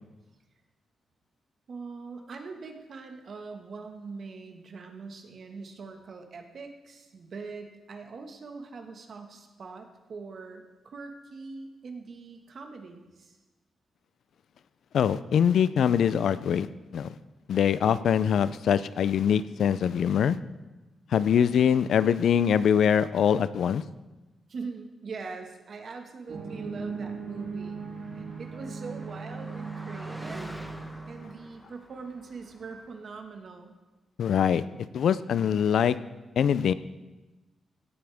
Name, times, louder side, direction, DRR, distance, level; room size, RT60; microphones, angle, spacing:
voice 1, 1.7-13.4 24.5-30.5 31.1-33.8, right 4 dB, 55° right, 4 dB, 1.7 m, -42 dB
voice 2, 14.9-16.7 16.9-17.1 17.5-20.4 21.1-23.8 34.2-34.6 34.9-36.0 36.4-36.7, left 8 dB, 75° left, 15 dB, 0.5 m, -23 dB
sound 1, 26.3-31.3, right 4 dB, 90° right, 3.6 m, -38 dB
Car passing by, 27.2-33.2, equal, ahead, 1.2 m, -47 dB
17.0 x 12.5 x 3.6 m, 1.1 s
cardioid pair, 115°, 0 cm